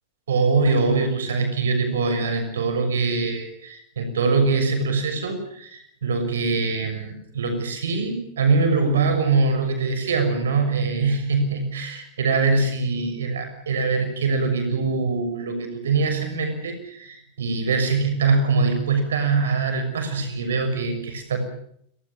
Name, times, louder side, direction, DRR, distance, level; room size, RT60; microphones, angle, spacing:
voice 1, 0.3-21.4, right 4 dB, 65° right, 7 dB, 6.5 m, -23 dB
29.0 x 19.5 x 7.2 m, 0.69 s
figure-of-eight pair, 90°, 0 cm